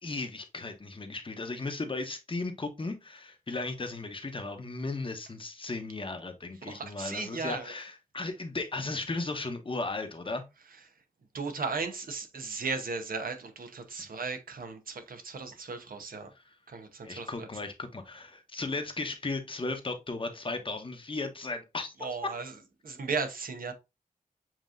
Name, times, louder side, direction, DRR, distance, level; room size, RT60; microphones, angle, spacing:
voice 1, 0.0-10.4 17.0-21.9, left 3 dB, 35° left, 0.9 m, -36 dB
voice 2, 6.7-7.7 11.3-16.3 16.7-17.5 22.0-22.5 22.8-23.7, right 4 dB, 80° right, 0.9 m, -36 dB
7.3 x 2.9 x 2.5 m
wide cardioid pair, 100°, 15 cm